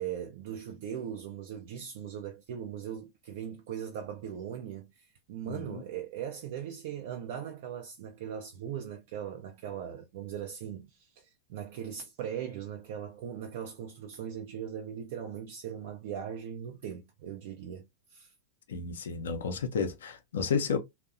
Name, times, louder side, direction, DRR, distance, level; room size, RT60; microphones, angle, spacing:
voice 1, 0.0-18.3, right 9 dB, 50° right, 0.3 m, -39 dB
voice 2, 5.4-5.8 18.7-20.8, left 5 dB, 65° left, 0.4 m, -32 dB
2.6 x 2.0 x 2.5 m
figure-of-eight pair, 90°, 0 cm